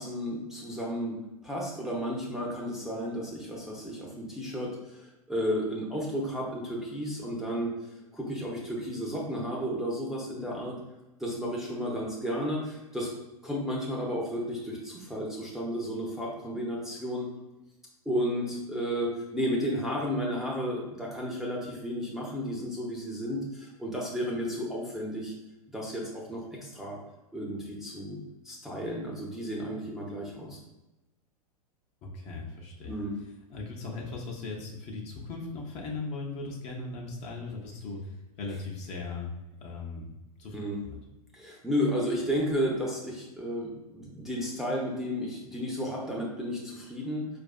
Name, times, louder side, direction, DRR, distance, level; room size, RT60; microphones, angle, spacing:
voice 1, 0.0-7.7 8.1-10.8 11.2-13.1 13.4-17.3 18.1-25.3 25.7-27.0 27.3-28.2 28.4-30.6 32.8-33.1 40.5-40.8 41.3-47.3, equal, ahead, -3 dB, 0.7 m, -33 dB
voice 2, 32.0-33.0 33.5-39.3 39.6-40.6 40.8-41.0, left 3 dB, 35° left, -1 dB, 0.7 m, -38 dB
4.6 x 2.5 x 2.3 m, 1.0 s
figure-of-eight pair, 95°, 20 cm